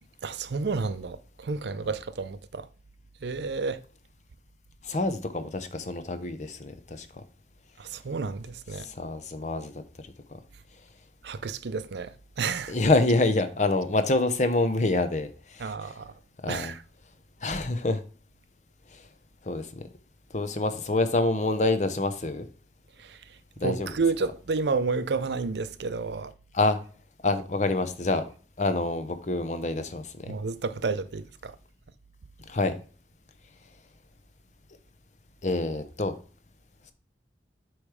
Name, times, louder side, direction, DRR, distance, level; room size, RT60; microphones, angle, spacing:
voice 1, 0.2-2.7 3.2-3.8 7.8-8.8 11.2-12.8 15.6-16.1 16.5-16.8 23.0-26.3 30.3-31.6, right 4 dB, 75° right, 0.5 m, -31 dB
voice 2, 4.8-7.1 8.8-9.7 12.7-15.7 16.4-16.7 17.4-18.0 19.5-19.8 20.3-22.5 23.6-23.9 26.5-26.8 27.2-28.3 28.6-30.4 32.5-32.8 35.4-36.1, left 2 dB, 40° left, 0.7 m, -26 dB
8.3 x 3.2 x 4.8 m
head